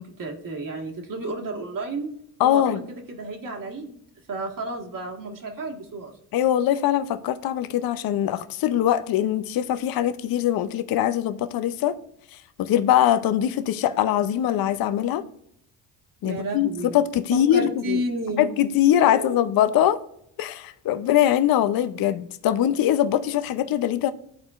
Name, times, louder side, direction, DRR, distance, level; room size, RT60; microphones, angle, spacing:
voice 1, 0.0-2.1 2.4-2.8 3.1-4.0 4.3-6.1 16.2-17.0 17.3-18.4 19.0-19.4, right 2 dB, 40° right, 1.6 m, -31 dB
voice 2, 2.4-2.8 6.3-12.0 12.3-15.2 16.2-18.0 18.4-20.0 20.4-24.1, left 11 dB, 45° left, 0.5 m, -22 dB
12.0 x 4.3 x 2.4 m
supercardioid pair, 80°, 50 cm